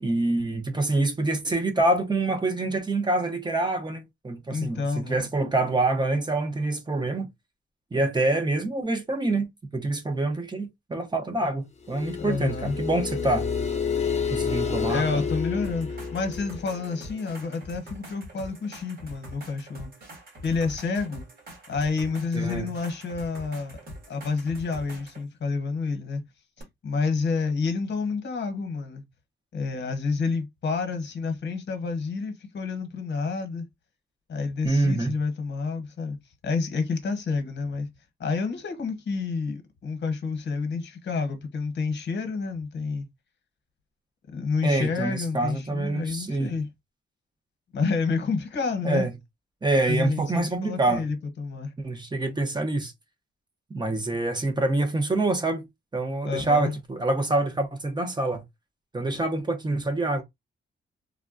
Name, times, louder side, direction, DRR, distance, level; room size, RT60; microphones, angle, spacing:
voice 1, 0.0-7.3 7.9-13.5 14.3-15.3 22.3-22.7 34.6-35.1 44.6-46.5 48.8-49.1 49.6-51.1 51.8-52.9 53.7-55.7 55.9-58.4 58.9-60.2, right 2 dB, 20° right, 0.7 m, -26 dB
voice 2, 4.5-5.3 12.2-12.7 14.9-19.9 20.4-21.2 21.7-23.8 24.1-26.2 26.8-29.0 29.5-33.7 34.3-36.2 36.4-37.9 38.2-43.1 44.3-46.7 47.7-49.1 49.9-51.7 56.2-56.7, left 4 dB, 60° left, 0.9 m, -29 dB
sound 1, 11.8-17.3, left 6 dB, 35° left, 0.6 m, -30 dB
sound 2, 15.6-25.2 26.6-26.7, equal, 50° right, 1.7 m, -44 dB
3.5 x 2.1 x 2.4 m
cardioid pair, 110°, 21 cm